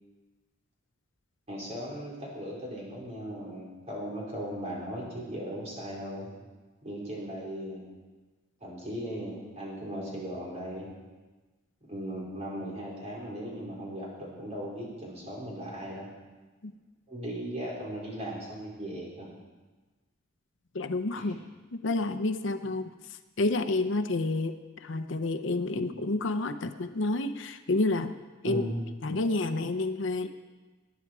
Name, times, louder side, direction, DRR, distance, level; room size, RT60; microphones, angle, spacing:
voice 1, 1.5-6.3 6.8-7.8 8.6-10.9 11.9-16.1 17.1-19.3 21.2-21.3 28.4-28.8, equal, 30° right, -4 dB, 4.5 m, -37 dB
voice 2, 20.7-21.4 21.7-28.2 28.4-28.6 29.0-30.3, left 2 dB, 60° left, 9 dB, 0.7 m, -29 dB
19.5 x 10.5 x 4.8 m, 1.3 s
head